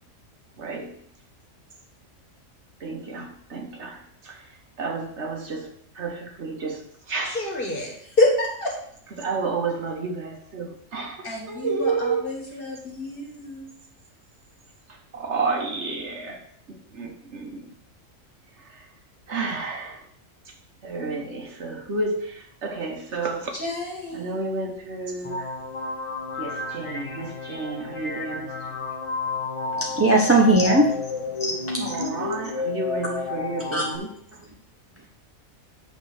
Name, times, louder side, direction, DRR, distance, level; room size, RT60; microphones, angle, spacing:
voice 1, 0.6-1.0 2.8-4.4 4.8-7.4 9.2-12.3 15.1-17.7 18.7-18.8 19.3-20.0 20.8-23.5 24.1-25.5 26.4-28.5 31.8-34.1, right 4 dB, 60° right, 3 dB, 1.3 m, -31 dB
voice 2, 7.2-8.8 11.2-13.7 23.5-24.4, left 2 dB, 40° left, -1 dB, 1.8 m, -27 dB
sound 1, 25.2-34.0, left 4 dB, 25° left, 1.0 m, -31 dB
voice 3, 29.8-30.9 31.4-32.0 33.7-33.8, right 2 dB, 15° right, -2 dB, 0.5 m, -19 dB
8.9 x 3.2 x 6.4 m, 0.63 s
omnidirectional pair, 1.4 m